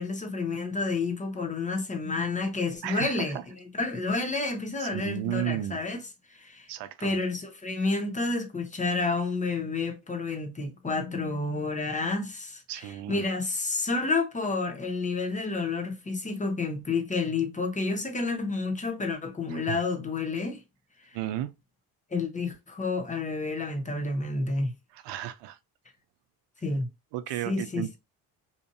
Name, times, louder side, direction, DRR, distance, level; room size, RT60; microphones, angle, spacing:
voice 1, 0.0-6.0 6.3-6.7 7.0-20.6 22.1-24.7 26.6-26.9 27.5-28.0, left 3 dB, 15° left, 0.8 m, -30 dB
voice 2, 2.8-3.4 4.8-5.8 6.7-7.2 12.7-13.2 19.5-19.8 21.1-21.5 24.9-25.6 27.1-28.0, right 13 dB, 70° right, 0.6 m, -34 dB
2.8 x 2.5 x 2.6 m
supercardioid pair, 70°, 44 cm